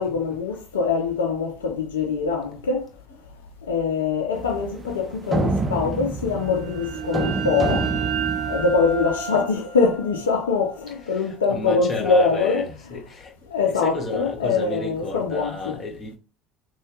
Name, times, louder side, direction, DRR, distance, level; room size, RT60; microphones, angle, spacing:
voice 1, 0.0-2.8 3.7-7.9 8.5-12.6 13.5-15.7, left 4 dB, 85° left, 0.4 m, -23 dB
sound 1, 4.3-9.2, right 2 dB, 25° right, 0.6 m, -28 dB
sound 2, 6.4-11.9, right 8 dB, 60° right, 0.9 m, -32 dB
voice 2, 10.9-13.3 13.6-16.2, left 2 dB, 35° left, 1.5 m, -32 dB
3.2 x 2.2 x 2.9 m
hypercardioid pair, 70°, 0 cm